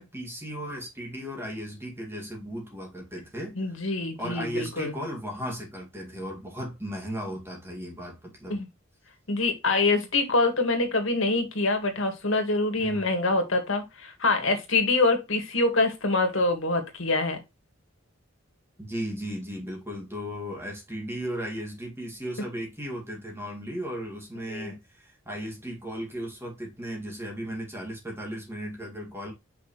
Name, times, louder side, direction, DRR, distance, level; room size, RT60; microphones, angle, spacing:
voice 1, 0.0-3.9 4.2-8.6 12.8-13.0 18.8-29.3, equal, 10° right, 2.2 m, -36 dB
voice 2, 3.6-4.9 8.5-8.7 9.3-17.4 24.5-24.7, left 3 dB, 80° left, 1.9 m, -25 dB
6.0 x 5.6 x 3.2 m
head